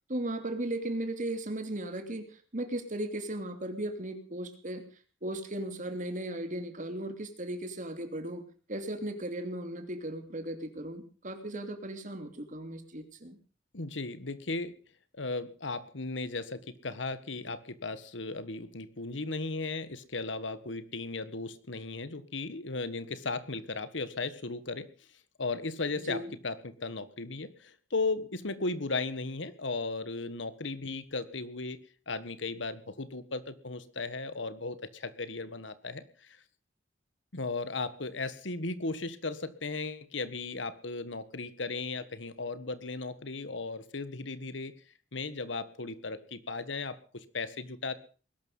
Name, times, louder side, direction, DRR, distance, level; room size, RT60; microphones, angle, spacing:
voice 1, 0.1-4.8 5.2-8.4 8.7-13.4 26.0-26.3, right 1 dB, 45° right, 7 dB, 3.0 m, -36 dB
voice 2, 13.7-14.7 15.1-24.9 25.4-31.8 32.1-36.4 37.3-44.7 45.1-47.9, left 3 dB, 75° left, 14 dB, 1.5 m, -36 dB
20.5 x 12.0 x 5.5 m, 0.39 s
head